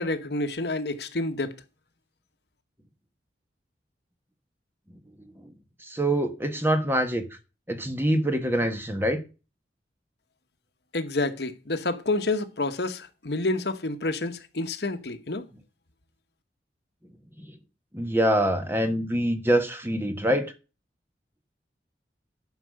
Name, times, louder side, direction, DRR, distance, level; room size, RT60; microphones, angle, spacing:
voice 1, 0.0-1.5 10.9-15.4, left 2 dB, 65° left, 1.1 m, -29 dB
voice 2, 5.9-7.3 7.7-9.2 17.4-17.5 17.9-20.5, right 1 dB, 15° right, 1.3 m, -25 dB
11.5 x 5.6 x 6.4 m
head